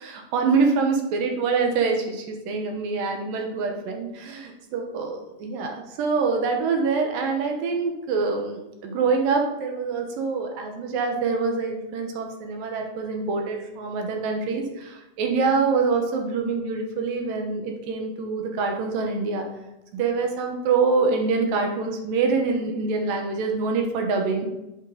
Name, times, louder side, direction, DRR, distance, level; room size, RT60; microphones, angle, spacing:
voice 1, 0.0-19.5 19.9-24.5, right 4 dB, 80° right, 3 dB, 2.9 m, -25 dB
8.4 x 6.9 x 4.0 m, 0.93 s
omnidirectional pair, 4.0 m